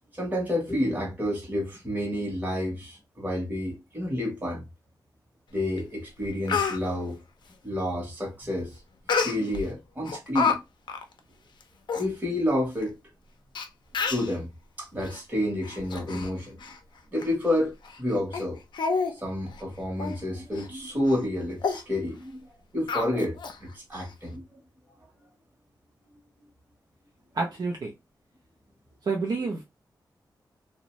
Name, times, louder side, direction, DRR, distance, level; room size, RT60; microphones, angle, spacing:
voice 1, 0.1-4.6 5.5-7.2 7.6-8.8 9.2-10.6 11.9-13.0 14.0-14.5 14.8-16.6 17.1-17.7 18.0-18.6 19.1-22.4 22.7-24.6 26.1-26.5, left 1 dB, 20° right, 0.9 m, -29 dB
Speech, 5.8-5.9 6.2-6.8 9.1-9.6 10.1-10.6 10.9-11.0 11.6-11.7 11.9-12.1 12.8-12.9 13.6-13.7 13.9-14.3 15.0-15.2 15.6-16.3 16.6-16.8 17.2-17.3 17.8-18.0 18.3-18.4 18.7-19.1 19.5-19.6 20.0-20.2 20.5-20.7 21.1-21.2 21.6-21.8 22.9-23.6 23.9-24.0, left 5 dB, 75° left, 0.5 m, -28 dB
voice 2, 27.3-27.9 29.0-29.6, right 4 dB, 55° right, 0.5 m, -28 dB
2.6 x 2.1 x 3.0 m
wide cardioid pair, 105°, 8 cm